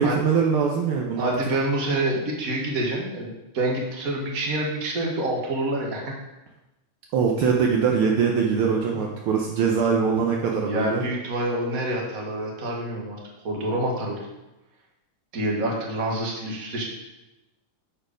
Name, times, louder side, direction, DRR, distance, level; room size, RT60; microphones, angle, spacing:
voice 1, 0.0-1.3 7.1-11.0, right 6 dB, 80° right, 0 dB, 1.2 m, -22 dB
voice 2, 1.2-6.1 8.9-9.0 10.5-13.2 13.4-14.2 15.3-16.8, right 1 dB, 40° right, -1 dB, 1.4 m, -27 dB
11.0 x 4.6 x 5.0 m, 1.0 s
omnidirectional pair, 3.4 m